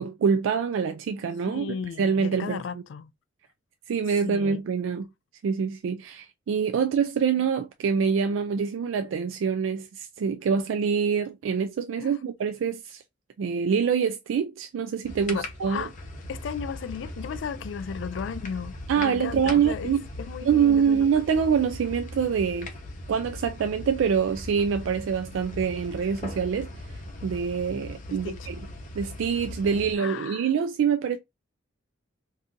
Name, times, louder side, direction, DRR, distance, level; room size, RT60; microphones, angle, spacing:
voice 1, 0.0-2.8 3.9-5.1 5.4-13.0 13.4-15.9 18.9-20.1 20.4-22.7 23.1-28.6 28.9-31.2, right 6 dB, 75° right, 0.3 m, -25 dB
voice 2, 1.5-3.1 4.2-4.6 12.0-12.1 15.3-15.9 16.3-19.9 20.2-21.1 28.1-28.5 30.0-30.5, left 6 dB, 65° left, 0.3 m, -35 dB
sound 1, 15.0-30.0, left 1 dB, 40° left, 0.7 m, -39 dB
2.7 x 2.5 x 3.6 m
head